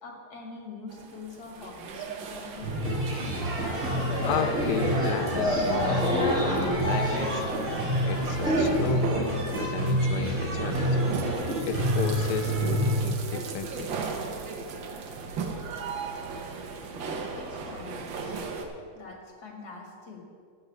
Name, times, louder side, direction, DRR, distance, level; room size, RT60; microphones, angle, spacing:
voice 1, 0.0-2.7 16.9-18.4 18.9-20.2, left 3 dB, 50° left, 1 dB, 2.4 m, -44 dB
sound 1, 0.9-18.7, right 4 dB, 70° right, 1.7 m, -36 dB
sound 2, 2.6-13.0, equal, 20° right, 3.4 m, -28 dB
sound 3, 3.6-8.6, equal, ahead, 3.1 m, -29 dB
voice 2, 4.2-7.4 8.0-11.0 11.7-13.9, left 8 dB, 75° left, 7 dB, 0.9 m, -34 dB
13.0 x 4.6 x 8.2 m, 2.1 s
omnidirectional pair, 2.2 m